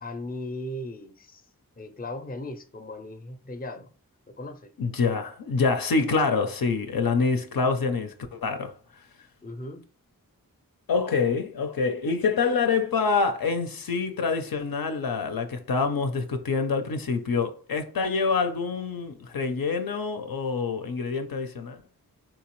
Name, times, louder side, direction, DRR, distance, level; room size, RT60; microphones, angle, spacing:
voice 1, 0.0-1.4 1.8-3.9 4.3-4.7 9.4-9.8, left 1 dB, 25° left, 0.5 m, -37 dB
voice 2, 4.8-8.8 10.9-21.8, left 4 dB, 75° left, 0.5 m, -26 dB
3.6 x 2.8 x 3.0 m
wide cardioid pair, 45°, 36 cm